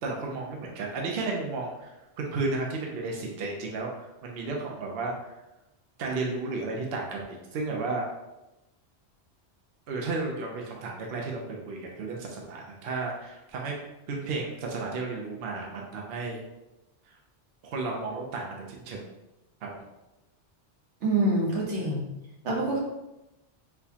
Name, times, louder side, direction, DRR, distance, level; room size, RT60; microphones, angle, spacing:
voice 1, 0.0-1.9 2.2-3.9 4.2-5.2 6.0-8.1 9.9-13.8 14.1-16.4 17.6-19.0 19.6-19.8 21.8-21.9, right 3 dB, 65° right, -1 dB, 0.7 m, -33 dB
voice 2, 21.0-22.1 22.4-22.8, right 2 dB, 80° right, -3 dB, 1.2 m, -26 dB
4.2 x 2.2 x 2.7 m, 0.97 s
omnidirectional pair, 1.2 m